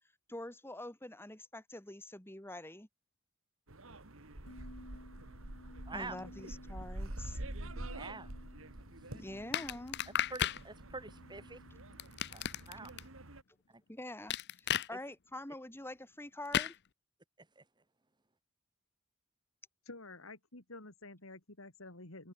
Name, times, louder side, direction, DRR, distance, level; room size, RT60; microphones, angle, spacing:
voice 1, 0.3-2.9 5.9-7.4 9.1-10.0 13.9-16.8, left 1 dB, 10° left, 2.7 m, -46 dB
sound 1, 3.7-13.4, right 1 dB, 70° right, 2.7 m, -47 dB
sound 2, 4.5-13.0, left 1 dB, 90° left, 7.8 m, -57 dB
voice 2, 5.9-6.2 7.9-8.3 10.3-11.6 12.3-12.9 17.6-17.7, right 3 dB, 20° right, 2.5 m, -45 dB
sound 3, 9.5-10.6 12.0-13.0 14.3-14.9 16.5-16.7, left 10 dB, 55° left, 0.7 m, -33 dB
voice 3, 19.8-22.3, left 2 dB, 70° left, 3.8 m, -50 dB
head